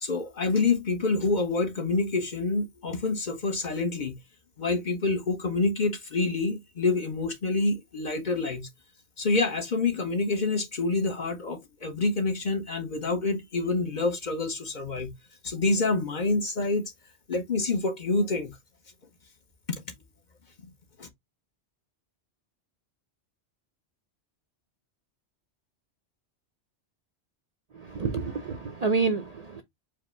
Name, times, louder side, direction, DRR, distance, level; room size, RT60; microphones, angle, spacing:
voice 1, 0.0-4.2 4.6-8.7 9.2-15.1 15.4-16.9 17.3-18.6 21.0-21.1, left 3 dB, 45° left, 0.9 m, -27 dB
voice 2, 27.7-29.6, right 4 dB, 45° right, 0.5 m, -28 dB
4.8 x 2.1 x 4.4 m
omnidirectional pair, 1.2 m